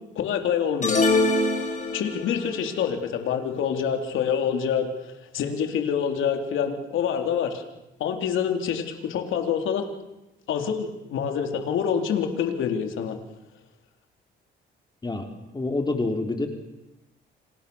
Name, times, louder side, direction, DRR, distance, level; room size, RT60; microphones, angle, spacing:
voice 1, 0.2-1.0 1.9-7.6 8.0-9.9 10.5-13.2, left 7 dB, 80° left, 5 dB, 3.8 m, -26 dB
sound 1, 0.8-2.4, left 2 dB, 40° left, 5.7 m, -23 dB
voice 2, 15.5-16.5, left 2 dB, 20° left, 4 dB, 4.0 m, -26 dB
30.0 x 27.5 x 7.2 m, 0.96 s
cardioid pair, 90°, 20 cm